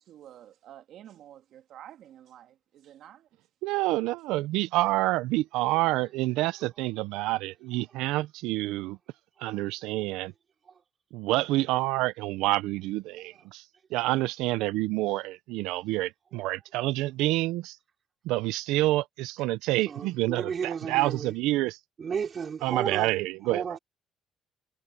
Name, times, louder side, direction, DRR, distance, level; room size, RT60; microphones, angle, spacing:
voice 1, 0.0-3.3, right 11 dB, 65° right, 2.6 m, -50 dB
voice 2, 3.6-9.0 9.4-10.3 11.1-13.6 13.9-17.8 18.2-20.5 20.9-21.8 22.6-23.6, right 18 dB, 90° right, 0.5 m, -28 dB
voice 3, 9.4-9.7 10.0-10.1 10.6-10.8 11.7-11.8 13.3-13.4 19.8-21.4 22.0-23.8, right 6 dB, 40° right, 5.1 m, -35 dB
cardioid pair, 110°, 0 cm